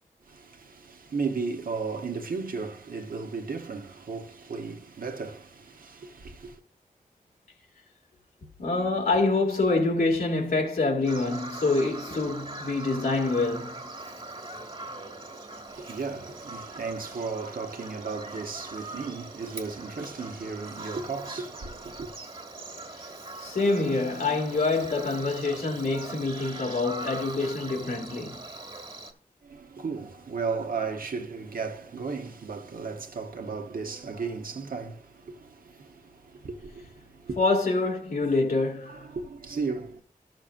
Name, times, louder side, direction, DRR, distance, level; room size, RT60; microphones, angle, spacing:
voice 1, 0.2-6.6 15.7-22.1 29.4-37.4 38.8-40.0, right 4 dB, 80° right, 1.1 m, -35 dB
voice 2, 8.6-13.9 23.4-28.5 37.4-39.1, left 3 dB, 90° left, 2.3 m, -26 dB
Bird vocalization bird call bird song, 11.0-29.1, right 2 dB, 40° right, 1.7 m, -41 dB
13.5 x 6.4 x 2.5 m
wide cardioid pair, 90°, 15 cm